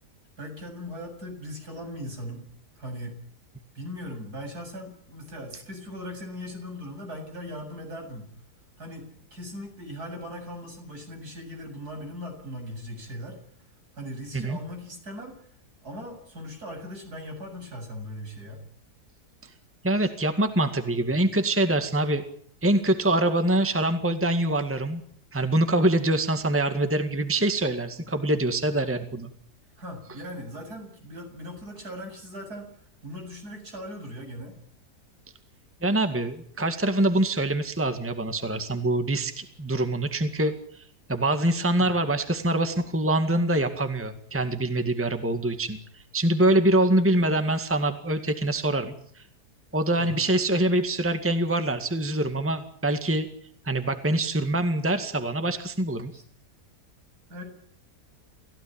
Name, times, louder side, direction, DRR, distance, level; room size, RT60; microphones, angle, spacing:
voice 1, 0.4-2.4 2.8-3.2 3.7-8.3 8.8-13.4 13.9-15.4 15.8-18.6 29.8-32.7 33.0-34.6 41.8-41.9 50.0-50.3 56.1-56.2 57.3-57.4, equal, 70° right, 4 dB, 8.2 m, -39 dB
voice 2, 19.8-22.2 22.6-25.0 25.3-29.3 35.8-40.8 41.1-49.3 49.7-53.3 53.6-56.1, right 1 dB, 10° right, 8 dB, 1.9 m, -24 dB
28.5 x 16.0 x 8.8 m, 0.63 s
omnidirectional pair, 1.7 m